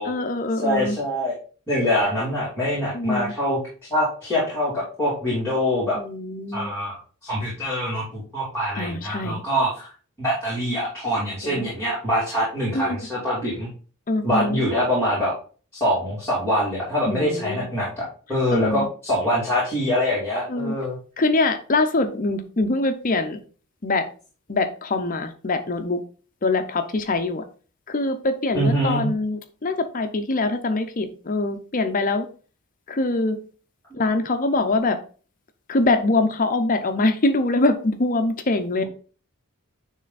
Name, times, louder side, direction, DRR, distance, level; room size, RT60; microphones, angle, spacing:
voice 1, 0.0-1.0 2.9-3.3 5.9-6.7 8.8-9.4 11.4-11.7 12.7-13.1 14.1-14.6 17.1-17.7 18.3-18.9 20.5-20.8 21.2-23.4 23.8-24.1 24.5-26.0 26.4-27.4 27.9-32.3 32.9-33.4 33.9-35.0 35.7-38.8, left 2 dB, 40° left, 8 dB, 0.6 m, -24 dB
voice 2, 0.6-1.3 1.7-3.6 3.9-6.0 6.5-9.9 10.2-13.7 14.2-15.3 15.7-21.0 28.5-29.1, equal, 10° left, -9 dB, 2.9 m, -24 dB
9.9 x 3.4 x 4.0 m, 0.39 s
head